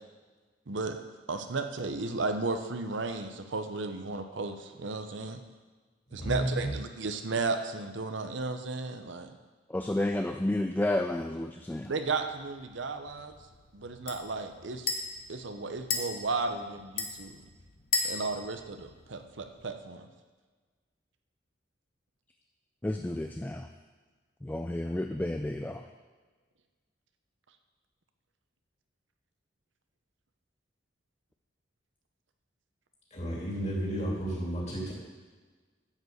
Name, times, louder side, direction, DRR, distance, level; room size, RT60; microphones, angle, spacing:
voice 1, 0.7-1.0 1.3-5.4 6.1-9.3 11.9-13.4 13.7-14.9 15.3-17.4 18.0-20.1, right 3 dB, 75° right, 7 dB, 0.8 m, -34 dB
voice 2, 6.2-6.7 33.1-34.9, right 1 dB, 35° left, -4 dB, 2.8 m, -32 dB
voice 3, 9.7-11.9 22.8-23.7 24.4-25.8, left 1 dB, 10° left, 5 dB, 0.3 m, -31 dB
sound 1, 11.8-19.6, left 4 dB, 50° left, 1.2 m, -38 dB
10.5 x 5.3 x 7.9 m, 1.4 s
head